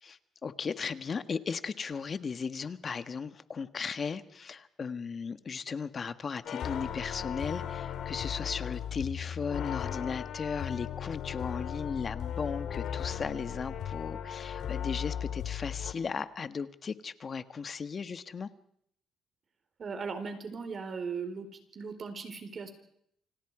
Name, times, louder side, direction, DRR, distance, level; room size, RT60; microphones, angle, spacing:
voice 1, 0.0-18.5, left 5 dB, 45° left, 11 dB, 1.4 m, -36 dB
sound 1, 6.4-15.9, left 9 dB, 75° left, 2.3 m, -36 dB
voice 2, 19.8-21.5 21.7-22.7, right 5 dB, 45° right, 8 dB, 4.5 m, -38 dB
28.5 x 26.5 x 5.0 m, 0.71 s
cardioid pair, 90°, 0 cm